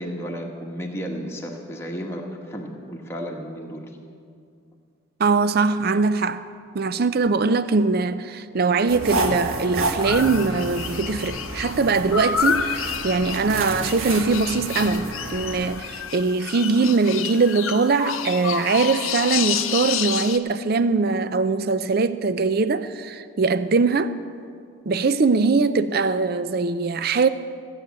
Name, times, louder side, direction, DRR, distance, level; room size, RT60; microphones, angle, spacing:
voice 1, 0.0-3.9, equal, 10° left, 1.3 m, -33 dB
voice 2, 5.2-6.4 6.7-24.2 24.9-27.3, right 4 dB, 45° right, 0.5 m, -21 dB
sound 1, 8.9-15.7, right 2 dB, 75° right, 1.5 m, -30 dB
sound 2, 10.0-20.4, left 8 dB, 75° left, 0.7 m, -29 dB
15.5 x 7.9 x 8.3 m
head